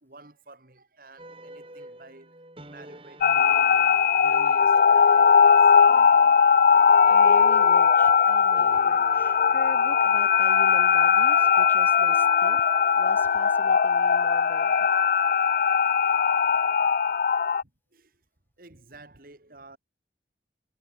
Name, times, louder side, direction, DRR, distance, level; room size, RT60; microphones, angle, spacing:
voice 1, 0.0-2.4 2.6-6.3 12.5-12.6 16.6-16.9 17.9-18.2 18.6-19.8, right 2 dB, 50° right, 2.4 m, -51 dB
sound 1, 1.2-15.7, right 1 dB, 30° right, 4.4 m, -50 dB
sound 2, 3.2-17.6, left 6 dB, 50° left, 0.3 m, -19 dB
voice 2, 7.1-14.9, equal, 10° left, 4.7 m, -45 dB
head